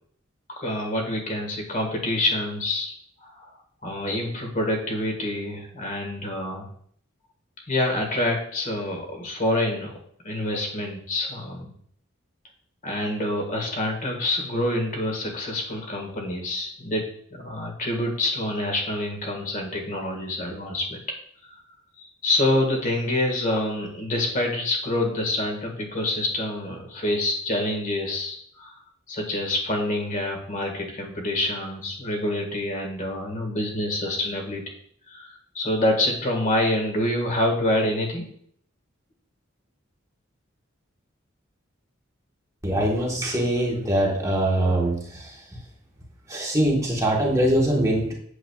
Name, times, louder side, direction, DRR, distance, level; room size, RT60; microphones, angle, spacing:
voice 1, 0.6-2.9 3.2-3.5 3.8-6.7 7.7-9.9 10.2-11.7 12.8-21.0 22.0-28.7 29.1-34.6 35.1-38.3, left 1 dB, 40° left, 1 dB, 1.7 m, -27 dB
voice 2, 42.6-45.4 46.3-48.1, right 1 dB, 15° right, -2 dB, 1.2 m, -23 dB
8.2 x 7.5 x 2.3 m, 0.62 s
head